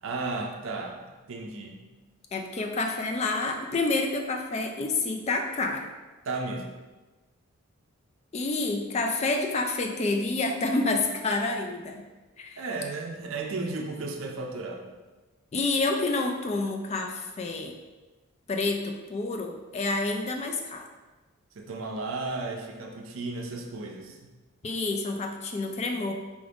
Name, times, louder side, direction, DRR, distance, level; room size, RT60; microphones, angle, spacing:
voice 1, 0.0-1.0 1.3-1.8 6.2-6.7 12.6-14.9 21.6-24.3, right 3 dB, 65° right, 2 dB, 0.5 m, -34 dB
voice 2, 2.3-5.9 8.3-12.0 12.4-12.6 15.5-17.7 18.5-20.9 24.6-26.1, left 3 dB, 30° left, 3 dB, 0.3 m, -28 dB
4.8 x 2.5 x 3.4 m, 1.2 s
head